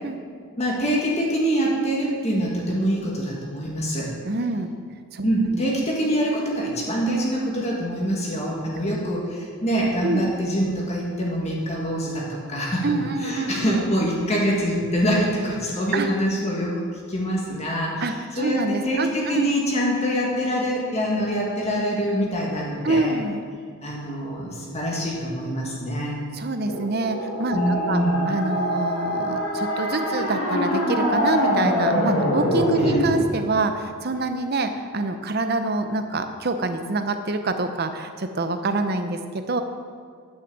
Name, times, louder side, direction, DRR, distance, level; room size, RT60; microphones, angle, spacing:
voice 1, 0.6-4.1 5.2-12.9 13.2-16.7 17.1-17.9 18.4-23.1 23.8-26.1 27.5-28.3 32.8-33.0, equal, 30° left, -3 dB, 1.7 m, -25 dB
voice 2, 4.3-4.7 5.1-5.6 8.8-8.9 10.0-10.3 12.8-13.9 15.9-16.1 18.0-19.5 22.8-23.4 26.3-28.0 28.3-39.6, right 2 dB, 45° right, 8 dB, 0.7 m, -26 dB
sound 1, 26.7-33.2, equal, 65° left, 2.0 m, -24 dB
10.0 x 6.1 x 7.3 m, 2.1 s
head